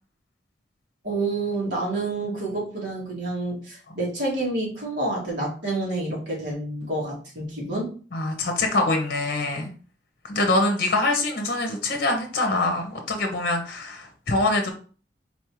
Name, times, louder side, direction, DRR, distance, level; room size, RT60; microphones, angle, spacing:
voice 1, 1.0-8.0, right 2 dB, 65° right, -4 dB, 2.2 m, -28 dB
voice 2, 8.1-9.7 10.2-14.7, left 2 dB, 55° left, 4 dB, 0.8 m, -24 dB
4.2 x 3.5 x 3.0 m, 0.39 s
head